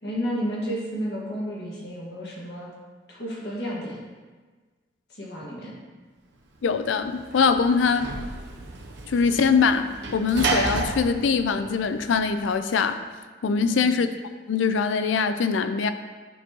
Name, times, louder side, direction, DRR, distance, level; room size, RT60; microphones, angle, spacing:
voice 1, 0.0-2.7 3.1-4.0 5.1-5.7 13.7-13.9, equal, 60° left, -5 dB, 1.7 m, -32 dB
voice 2, 6.6-8.1 9.1-13.0 13.4-14.1 14.5-15.9, left 5 dB, 80° left, 10 dB, 0.4 m, -22 dB
Sliding door / Slam, 6.7-12.5, right 3 dB, 70° right, 0.7 m, -32 dB
9.8 x 4.4 x 2.9 m, 1.4 s
head